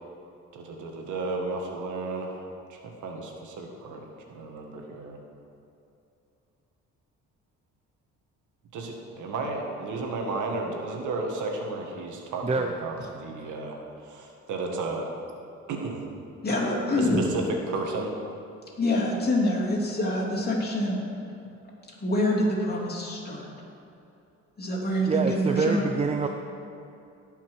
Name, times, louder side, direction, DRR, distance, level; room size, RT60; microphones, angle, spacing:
voice 1, 0.5-2.4 2.7-5.2 8.7-15.1 15.7-16.1 16.9-18.2, right 3 dB, 80° right, 1 dB, 1.7 m, -33 dB
voice 2, 16.4-17.2 18.8-21.0 22.0-23.5 24.6-25.9, left 1 dB, 30° left, -4 dB, 2.9 m, -26 dB
voice 3, 25.1-26.3, right 4 dB, 20° right, 5 dB, 0.5 m, -26 dB
17.0 x 5.8 x 4.7 m, 2.7 s
cardioid pair, 90°, 30 cm